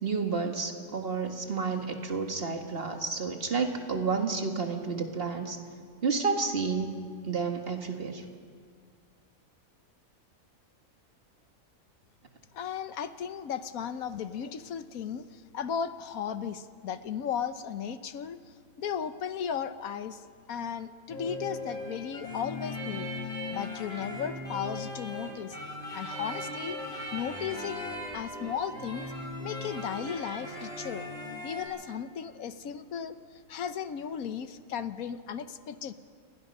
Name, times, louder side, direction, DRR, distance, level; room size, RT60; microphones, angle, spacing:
voice 1, 0.0-5.6 6.0-8.2, right 4 dB, 45° right, 4 dB, 1.9 m, -30 dB
voice 2, 12.5-20.2 20.5-23.1 23.5-25.6 25.9-26.8 27.1-29.1 29.4-31.0 31.4-35.9, left 8 dB, 90° left, 11 dB, 1.4 m, -36 dB
sound 1, 21.1-31.6, left 1 dB, 25° left, 6.3 m, -38 dB
29.5 x 21.0 x 5.5 m, 2.1 s
omnidirectional pair, 1.5 m